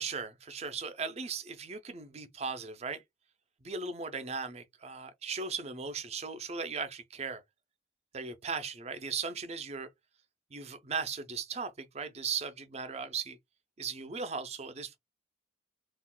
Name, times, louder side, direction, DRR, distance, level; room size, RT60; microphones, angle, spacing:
voice 1, 0.0-3.0 3.6-7.4 8.1-9.9 10.5-13.4 13.8-15.0, right 5 dB, 35° right, 0.5 m, -37 dB
2.4 x 2.2 x 3.7 m
head